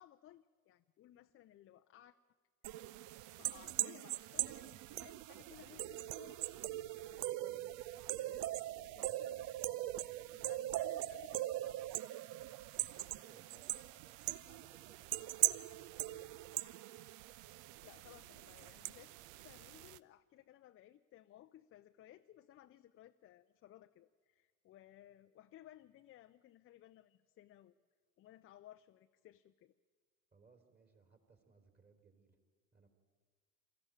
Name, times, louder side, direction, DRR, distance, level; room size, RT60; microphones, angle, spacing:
voice 1, 0.0-2.2 3.3-6.4 7.1-7.7 8.2-9.6 10.0-12.0 17.8-19.1 19.4-27.8 28.2-29.7, left 13 dB, 30° left, 8 dB, 0.6 m, -60 dB
sound 1, 2.6-20.0, right 15 dB, 45° right, 0.6 m, -41 dB
voice 2, 12.8-16.6 30.3-32.4 32.7-32.9, right 4 dB, 25° right, 6 dB, 3.3 m, -67 dB
24.0 x 13.5 x 8.9 m, 1.5 s
figure-of-eight pair, 70°, 43 cm